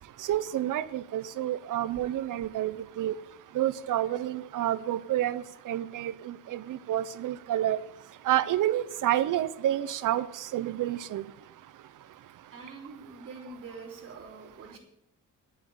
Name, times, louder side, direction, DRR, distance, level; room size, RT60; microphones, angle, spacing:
voice 1, 0.3-3.1 3.5-7.8 8.3-11.2, right 12 dB, 75° right, 0.8 m, -29 dB
voice 2, 12.5-14.8, right 4 dB, 40° right, 3.7 m, -45 dB
11.0 x 7.5 x 9.1 m
cardioid pair, 125°, 31 cm